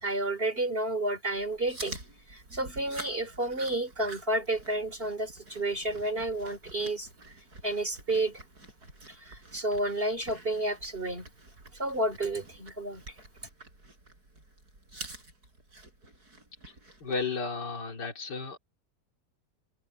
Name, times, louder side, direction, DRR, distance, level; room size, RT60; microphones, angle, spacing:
voice 1, 0.0-2.0 2.3-7.3 7.6-8.4 9.1-11.3 11.8-13.0, right 1 dB, 35° right, 3.4 m, -31 dB
Chewing mastication, 1.4-17.2, right 2 dB, 65° right, 7.4 m, -48 dB
voice 2, 17.0-18.6, left 4 dB, 90° left, 3.2 m, -33 dB
open air
omnidirectional pair, 1.8 m